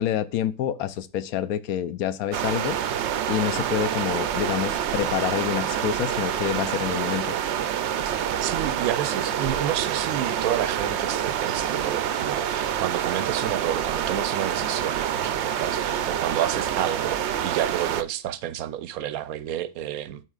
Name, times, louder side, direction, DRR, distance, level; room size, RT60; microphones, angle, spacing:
voice 1, 0.0-2.8 3.3-7.4, left 10 dB, 85° left, 1.1 m, -27 dB
sound 1, 2.3-18.0, right 9 dB, 65° right, 0.7 m, -27 dB
voice 2, 8.4-20.2, right 11 dB, 90° right, 1.1 m, -30 dB
11.0 x 4.4 x 2.4 m
omnidirectional pair, 1.5 m